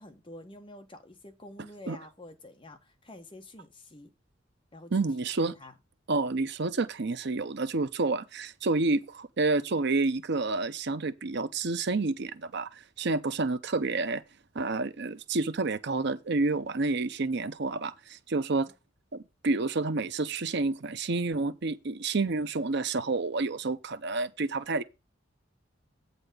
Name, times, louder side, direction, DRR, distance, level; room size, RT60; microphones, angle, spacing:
voice 1, 0.0-4.1 4.7-4.9 5.3-5.7, left 1 dB, 25° left, 1.4 m, -48 dB
voice 2, 4.9-5.5 6.1-14.2 14.5-18.7 19.1-24.8, right 3 dB, 60° right, 0.7 m, -29 dB
8.9 x 4.1 x 6.8 m
head